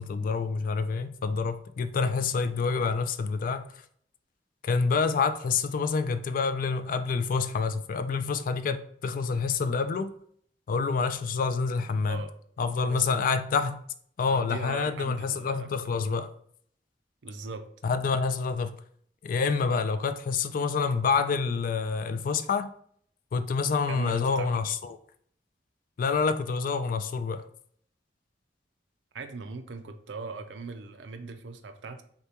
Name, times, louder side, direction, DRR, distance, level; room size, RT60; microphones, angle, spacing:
voice 1, 0.0-3.7 4.6-10.1 10.7-12.2 12.6-13.8 14.2-16.3 17.8-18.8 19.2-22.7 23.3-25.0 26.0-27.4, left 5 dB, 50° left, 0.3 m, -27 dB
voice 2, 12.8-13.3 14.2-15.7 17.2-17.6 23.9-24.5 29.1-32.0, right 4 dB, 80° right, 0.5 m, -39 dB
6.4 x 2.2 x 2.9 m
head